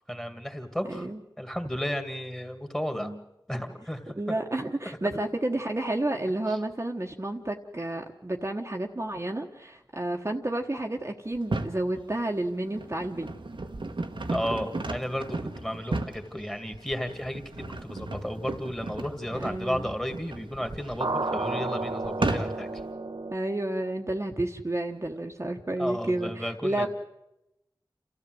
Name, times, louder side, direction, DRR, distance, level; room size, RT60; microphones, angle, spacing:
voice 1, 0.1-1.1 1.4-3.1 3.5-4.4 14.3-17.4 17.8-22.7 25.8-26.9, equal, 5° left, 7 dB, 2.3 m, -33 dB
voice 2, 0.9-1.2 2.9-3.2 4.1-13.3 19.3-19.9 23.3-26.9, right 1 dB, 35° right, 1 dB, 1.3 m, -31 dB
sound 1, 11.3-11.8 12.5-22.8, right 2 dB, 85° right, 1.3 m, -35 dB
sound 2, 21.0-23.3, right 2 dB, 65° right, 0.9 m, -31 dB
29.0 x 14.0 x 7.9 m, 0.92 s
wide cardioid pair, 55°, 8 cm